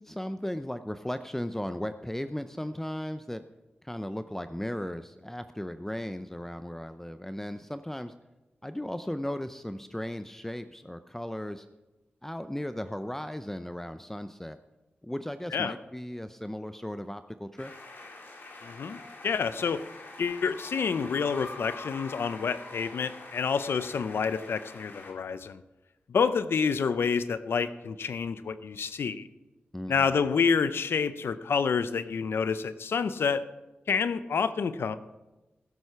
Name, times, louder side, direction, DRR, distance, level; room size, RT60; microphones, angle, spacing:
voice 1, 0.0-3.4 3.8-8.1 8.6-11.7 12.2-14.6 15.0-17.7 29.7-30.1, left 1 dB, 10° left, 10 dB, 0.5 m, -36 dB
sound 1, 17.6-25.1, left 2 dB, 65° left, 2.6 m, -45 dB
voice 2, 18.6-19.8 20.2-25.6 26.1-29.3 29.9-33.4 33.9-34.9, left 6 dB, 85° left, 14 dB, 0.6 m, -28 dB
16.0 x 8.0 x 5.7 m, 1.1 s
cardioid pair, 70°, 4 cm